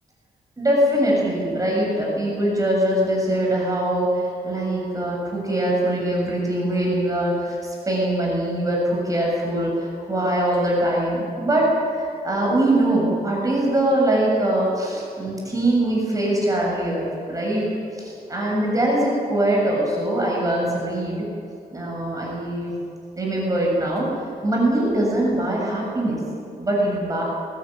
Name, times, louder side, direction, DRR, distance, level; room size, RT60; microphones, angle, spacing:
voice 1, 0.6-11.7 12.0-17.7 17.9-21.3 21.7-22.7 23.2-24.2 24.4-26.2 26.6-27.2, right 1 dB, 20° right, -3 dB, 7.1 m, -22 dB
21.5 x 19.5 x 9.0 m, 2.5 s
wide cardioid pair, 145°, 16 cm